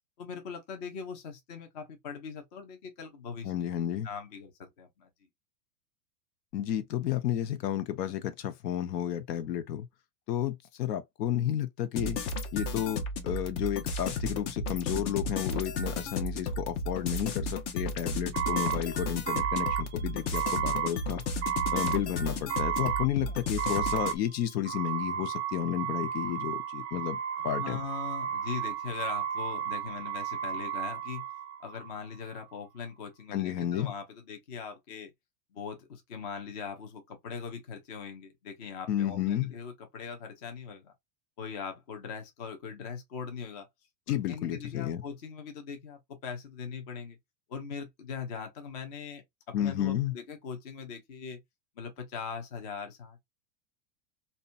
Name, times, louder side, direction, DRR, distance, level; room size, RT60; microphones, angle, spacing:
voice 1, 0.2-3.5 4.0-5.1 27.4-31.2 31.6-35.1 35.5-40.9 41.4-43.7 44.1-47.2 47.5-49.2 49.5-51.4 51.8-53.2, left 6 dB, 30° left, 0.3 m, -41 dB
voice 2, 3.4-4.1 6.5-9.9 10.3-12.2 12.5-21.2 21.7-27.2 27.4-27.8 33.3-33.9 38.9-39.5 44.1-45.0 49.5-50.1, left 11 dB, 85° left, 0.7 m, -32 dB
sound 1, 11.9-24.1, left 2 dB, 50° left, 0.7 m, -34 dB
sound 2, 18.3-31.9, right 9 dB, 45° right, 0.5 m, -33 dB
2.7 x 2.2 x 2.4 m
supercardioid pair, 160°, 48 cm